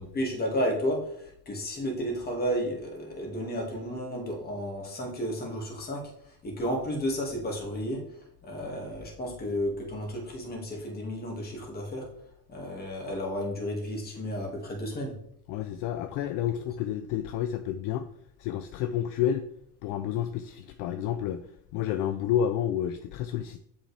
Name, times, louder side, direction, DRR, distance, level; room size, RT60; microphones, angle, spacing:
voice 1, 0.0-6.0 6.4-8.0 8.4-12.1 12.5-15.1, equal, 25° left, 0 dB, 2.0 m, -32 dB
voice 2, 15.5-18.1 18.4-19.5 19.8-23.6, left 10 dB, 60° left, 9 dB, 0.5 m, -30 dB
7.2 x 5.6 x 3.3 m, 0.73 s
cardioid pair, 135°, 37 cm